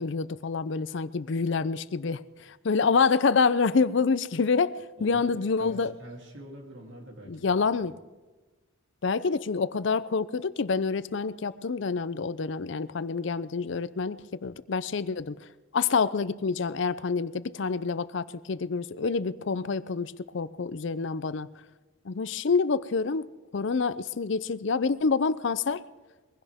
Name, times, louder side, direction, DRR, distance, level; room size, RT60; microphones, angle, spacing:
voice 1, 0.0-6.0 7.3-7.9 9.0-15.5 15.7-21.5 22.0-23.3 23.5-25.8, left 4 dB, 60° left, 16 dB, 0.5 m, -27 dB
voice 2, 5.0-7.5, equal, 60° right, 1 dB, 3.1 m, -45 dB
22.0 x 16.5 x 3.6 m, 1.2 s
head